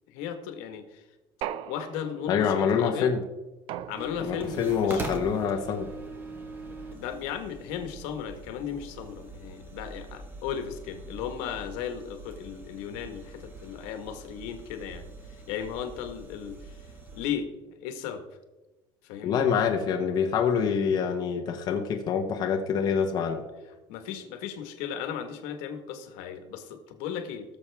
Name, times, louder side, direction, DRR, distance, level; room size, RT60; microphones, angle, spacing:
voice 1, 0.1-1.0 1.7-3.1 3.9-5.0 6.7-16.8 17.1-18.2 19.0-19.4 23.9-27.4, left 8 dB, 80° left, 7 dB, 1.4 m, -36 dB
sound 1, 1.4-2.4 3.7-4.5, right 11 dB, 50° right, 0.5 m, -38 dB
voice 2, 2.3-3.2 4.2-5.9 19.2-23.4, left 7 dB, 35° left, 2 dB, 1.1 m, -26 dB
sound 2, 3.9-17.3, right 2 dB, 20° right, 1.4 m, -42 dB
17.5 x 7.2 x 3.5 m, 1.1 s
cardioid pair, 155°, 11 cm